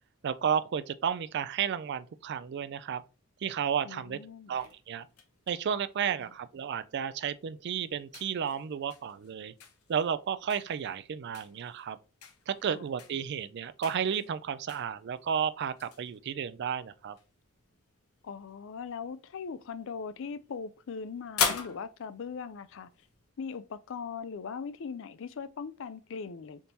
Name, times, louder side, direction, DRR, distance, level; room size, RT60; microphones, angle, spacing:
voice 1, 0.2-3.0 3.4-4.2 4.5-5.1 5.5-9.5 9.9-12.0 12.5-17.2, right 7 dB, 50° right, 0.3 m, -32 dB
voice 2, 3.8-4.6 6.2-6.3 12.7-12.8 18.2-22.9 23.4-26.7, left 5 dB, 60° left, 0.4 m, -40 dB
sound 1, 4.5-23.3, left 6 dB, 80° left, 0.8 m, -42 dB
4.0 x 3.6 x 2.8 m
head